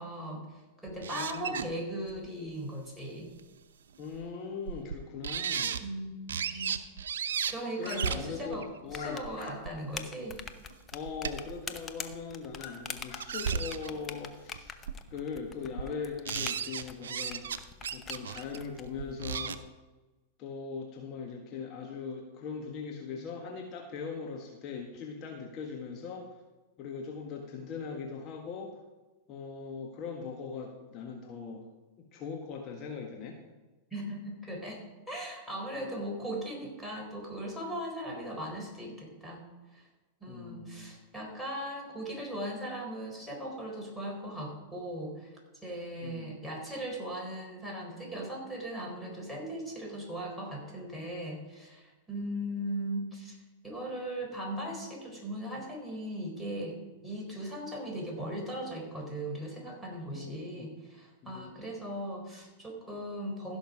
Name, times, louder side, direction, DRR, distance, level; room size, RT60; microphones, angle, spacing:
voice 1, 0.0-3.3 5.8-6.2 6.5-6.8 7.5-10.4 33.9-39.4 39.7-39.9 40.2-53.4 53.6-63.6, right 1 dB, ahead, -3 dB, 4.3 m, -38 dB
sound 1, 0.9-1.6 2.1-2.2 3.4-3.5 4.1-4.2 4.7-5.0 5.2-5.8 6.3-7.5 7.8-9.7 10.3-10.4 10.7-11.5 12.1-12.2 13.0-14.0 14.5-14.6 14.9-15.2 15.6-15.9 16.2-17.6 17.8-19.6, right 7 dB, 75° right, 0.7 m, -34 dB
voice 2, 1.1-1.7 4.0-5.7 7.8-9.2 10.9-14.7 15.1-17.4 17.9-19.6 20.4-26.2 26.8-28.8 29.3-31.6 32.1-33.4 40.3-40.9 46.0-46.4 60.1-60.7 61.2-61.5, left 5 dB, 40° left, 1 dB, 1.6 m, -40 dB
sound 2, 7.8-8.0 9.0-9.5 10.1-10.2 12.6-12.7 13.1-13.2, left 6 dB, 60° left, 4.6 m, -44 dB
sound 3, 8.9-18.8, left 6 dB, 25° left, 0.9 m, -44 dB
15.5 x 6.4 x 5.0 m, 1.2 s
hypercardioid pair, 105°, 0 cm